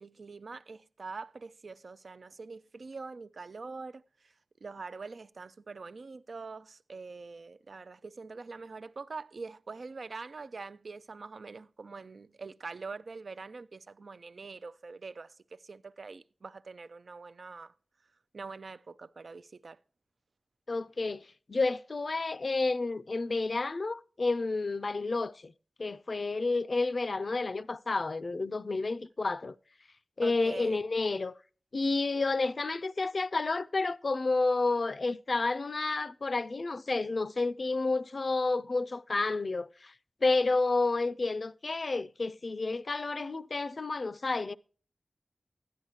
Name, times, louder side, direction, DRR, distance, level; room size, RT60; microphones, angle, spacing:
voice 1, 0.0-4.3 4.6-17.7 18.3-19.8 30.2-30.8, right 4 dB, 75° right, 0.4 m, -44 dB
voice 2, 20.7-25.5 25.8-29.6 30.2-31.4 31.7-39.9 40.2-44.5, left 3 dB, 60° left, 0.4 m, -30 dB
12.5 x 10.5 x 2.8 m
wide cardioid pair, 65°, 0 cm